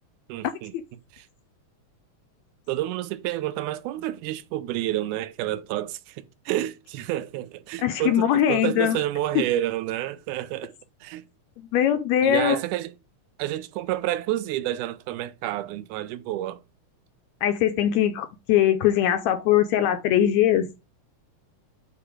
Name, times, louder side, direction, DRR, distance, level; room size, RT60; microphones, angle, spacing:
voice 1, 0.3-0.7 1.1-1.3 2.7-10.7 11.0-11.2 12.2-12.9 13.4-16.6, right 14 dB, 85° right, 2.0 m, -29 dB
voice 2, 7.8-9.0 9.4-9.5 11.6-12.6 17.4-20.7, left 11 dB, 80° left, 1.7 m, -21 dB
8.3 x 2.9 x 4.6 m
omnidirectional pair, 3.6 m